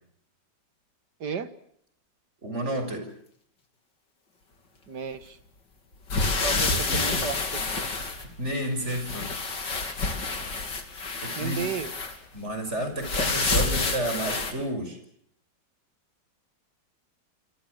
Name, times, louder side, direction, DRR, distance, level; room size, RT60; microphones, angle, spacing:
voice 1, 1.2-1.5 4.9-5.4 6.4-7.9 11.3-11.9, right 6 dB, 70° right, 12 dB, 2.2 m, -33 dB
voice 2, 2.4-3.1 6.9-7.2 8.4-9.3 11.2-11.7 12.3-15.0, right 1 dB, 40° right, 6 dB, 6.5 m, -31 dB
sound 1, 6.1-8.6 8.9-12.2 13.0-14.5, left 3 dB, 80° left, 3.7 m, -28 dB
28.0 x 26.0 x 6.6 m, 0.69 s
omnidirectional pair, 1.9 m